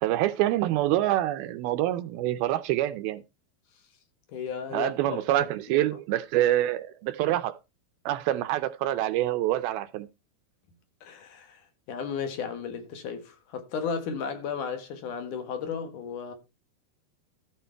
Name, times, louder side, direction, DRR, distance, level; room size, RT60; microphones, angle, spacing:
voice 1, 0.0-3.2 4.7-7.5 8.1-10.1, right 14 dB, 80° right, 2.3 m, -26 dB
voice 2, 4.3-6.0 11.0-11.6 11.9-16.3, left 6 dB, 60° left, 2.7 m, -34 dB
13.5 x 6.0 x 4.5 m
omnidirectional pair, 4.7 m